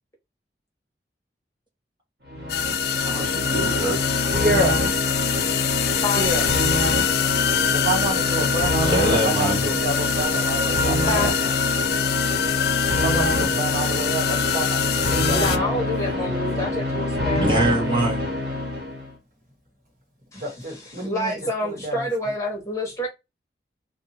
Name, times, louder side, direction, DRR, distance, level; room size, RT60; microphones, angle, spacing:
sound 1, 2.3-19.1, left 1 dB, 70° right, 1.2 m, -25 dB
sound 2, 2.5-15.6, left 9 dB, 65° left, 0.3 m, -25 dB
voice 1, 2.9-4.1 8.8-9.6 17.4-18.2, right 1 dB, 25° right, 1.2 m, -24 dB
voice 2, 4.2-4.8 6.1-6.5 7.7-11.5 13.0-15.8 16.2-16.8 20.3-22.1, right 1 dB, 45° right, 1.6 m, -28 dB
voice 3, 11.0-11.3 15.3-18.0 20.3-20.4 21.0-23.1, left 1 dB, 20° left, 1.1 m, -28 dB
2.7 x 2.6 x 4.2 m
head